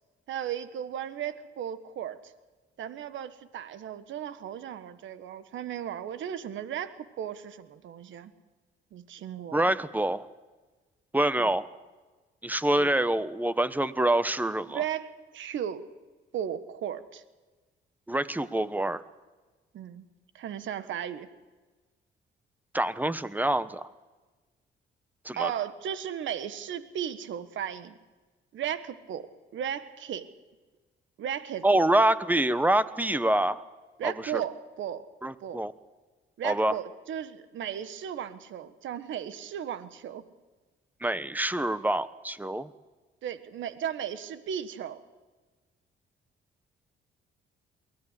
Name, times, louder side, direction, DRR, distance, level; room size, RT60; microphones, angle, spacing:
voice 1, 0.3-2.2 2.8-8.3 8.9-9.6 11.4-11.5 12.7-12.9 14.7-15.9 16.3-17.2 19.7-20.1 20.3-21.3 25.4-28.0 28.5-30.3 31.2-31.8 34.0-35.1 35.4-35.6 36.4-40.2 43.2-45.0, right 9 dB, 75° right, 12 dB, 1.5 m, -35 dB
voice 2, 9.5-10.3 11.1-11.7 12.4-14.8 18.1-19.0 22.7-23.9 25.2-25.5 31.6-33.6 34.0-34.4 35.2-35.7 36.4-36.8 41.0-42.7, right 1 dB, 10° right, 14 dB, 1.2 m, -26 dB
23.0 x 17.0 x 8.3 m, 1.3 s
cardioid pair, 90°, 20 cm